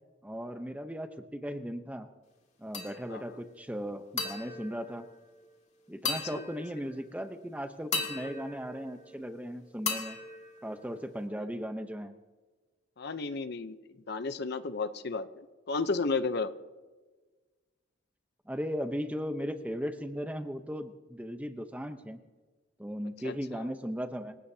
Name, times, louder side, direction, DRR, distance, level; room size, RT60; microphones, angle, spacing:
voice 1, 0.2-2.1 2.6-5.1 5.9-10.2 10.6-12.1 18.5-22.2 22.8-24.4, equal, 5° right, 8 dB, 0.8 m, -37 dB
sound 1, 2.7-3.3 4.2-5.6 6.0-7.1 7.9-9.4 9.9-11.3, left 4 dB, 35° left, 2.0 m, -38 dB
voice 2, 6.1-6.4 13.0-13.8 14.1-16.5 23.2-23.7, left 4 dB, 55° left, 11 dB, 0.7 m, -33 dB
27.5 x 16.5 x 2.8 m, 1.3 s
head